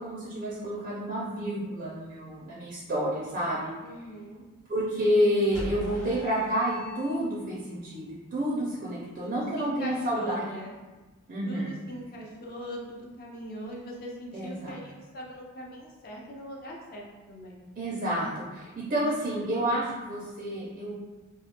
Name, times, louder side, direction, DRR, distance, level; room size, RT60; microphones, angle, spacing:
voice 1, 0.0-3.7 4.7-10.4 11.3-11.7 14.3-14.8 17.8-20.9, equal, 35° right, -6 dB, 0.4 m, -29 dB
voice 2, 3.8-4.4 9.2-10.7 11.4-17.6, equal, 45° left, -2 dB, 0.5 m, -40 dB
sound 1, 5.5-7.6, equal, 75° left, 1.1 m, -39 dB
2.3 x 2.1 x 2.8 m, 1.2 s
head